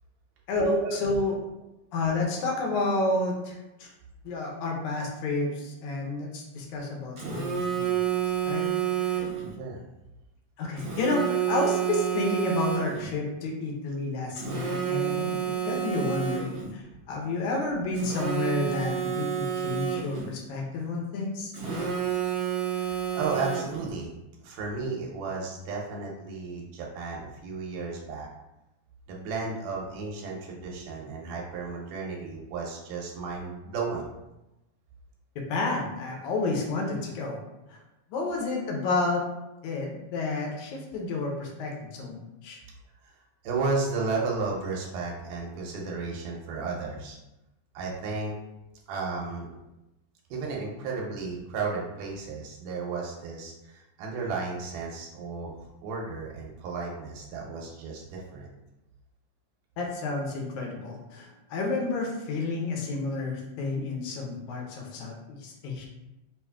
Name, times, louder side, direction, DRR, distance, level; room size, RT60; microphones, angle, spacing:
voice 1, 0.5-1.4 1.9-3.9 4.2-8.0 8.4-8.7 9.0-9.2 10.6-16.8 17.1-21.5 35.5-37.4 37.7-37.8 38.1-39.2 39.6-42.6 59.8-65.9, left 2 dB, 75° left, 0 dB, 2.0 m, -30 dB
Telephone, 7.2-9.5 10.8-13.1 14.4-16.7 17.9-20.3 21.5-23.9, right 9 dB, 55° right, 2.0 m, -29 dB
voice 2, 22.7-24.1 24.4-28.3 29.1-34.1 43.0-43.1 43.4-47.2 47.7-48.3 48.9-49.5 50.3-58.5, right 4 dB, 90° right, -2 dB, 2.2 m, -33 dB
5.5 x 2.5 x 2.3 m, 0.94 s
omnidirectional pair, 3.7 m